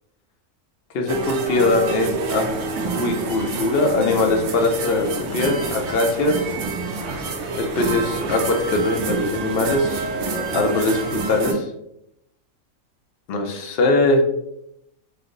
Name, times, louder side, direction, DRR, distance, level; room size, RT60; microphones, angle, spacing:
voice 1, 0.9-2.5 2.9-6.4 7.6-10.1 10.5-11.7 13.3-14.2, left 2 dB, 60° left, 4 dB, 0.6 m, -21 dB
sound 1, 1.1-11.5, right 4 dB, 75° right, 1.0 m, -27 dB
3.2 x 2.0 x 3.7 m, 0.80 s
omnidirectional pair, 1.5 m